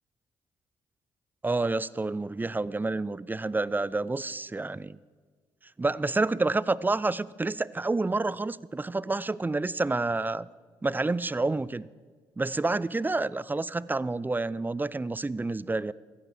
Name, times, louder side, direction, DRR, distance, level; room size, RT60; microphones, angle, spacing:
voice 1, 1.4-5.0 5.8-10.5 10.8-11.9 12.4-15.9, right 3 dB, 15° right, 20 dB, 0.5 m, -29 dB
15.0 x 8.7 x 7.3 m, 1.5 s
hypercardioid pair, 50°, 12 cm